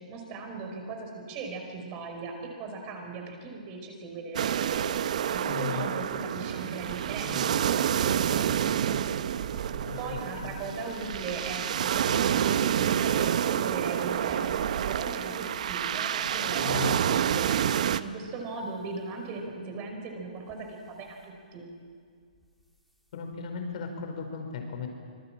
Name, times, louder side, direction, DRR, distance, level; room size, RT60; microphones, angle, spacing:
voice 1, 0.1-4.8 5.3-9.0 10.0-17.6 18.0-21.7, right 3 dB, 30° right, 3 dB, 4.9 m, -38 dB
sound 1, 4.3-18.0, right 9 dB, 60° right, 0.8 m, -28 dB
voice 2, 5.4-5.9 9.8-10.0 10.4-10.5 16.5-17.0 23.1-24.9, left 6 dB, 55° left, 4 dB, 5.0 m, -36 dB
sound 2, 9.4-10.4 10.9-15.0 15.4-15.8 16.3-16.6 16.9-17.2 17.8-17.9 18.3-18.4 19.5-19.6 20.4-21.2 22.3-22.5 22.9-23.0 23.3-23.4, equal, ahead, 3.1 m, -50 dB
26.0 x 20.5 x 7.6 m, 2.1 s
hypercardioid pair, 155°, 4 cm